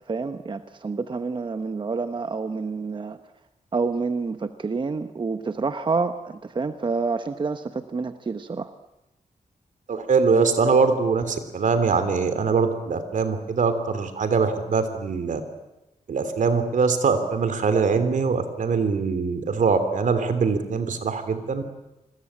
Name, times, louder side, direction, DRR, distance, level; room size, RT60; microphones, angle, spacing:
voice 1, 0.1-3.2 3.7-8.7, right 4 dB, 35° right, 9 dB, 1.0 m, -28 dB
voice 2, 9.9-15.4 16.1-21.6, right 5 dB, 70° right, 10 dB, 3.2 m, -22 dB
28.0 x 21.5 x 8.8 m, 0.97 s
wide cardioid pair, 145°, 13 cm